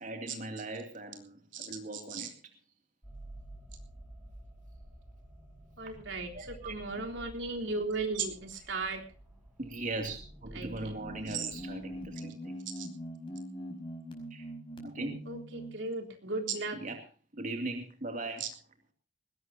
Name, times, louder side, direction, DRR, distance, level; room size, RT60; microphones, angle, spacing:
voice 1, 0.0-2.3 6.3-6.7 9.6-12.6 14.3-14.5 14.8-15.2 16.8-17.0 17.3-18.4, right 2 dB, 45° right, 5 dB, 2.6 m, -39 dB
voice 2, 1.5-2.3 5.8-9.0 10.5-11.0 11.3-11.5 12.8-12.9 15.3-16.8 18.4-18.5, right 4 dB, 80° right, 3 dB, 3.6 m, -36 dB
sound 1, 3.0-12.1, right 1 dB, 5° right, 6.4 m, -51 dB
sound 2, 11.0-15.9, equal, 30° left, 5.0 m, -42 dB
21.0 x 18.0 x 2.8 m, 0.36 s
head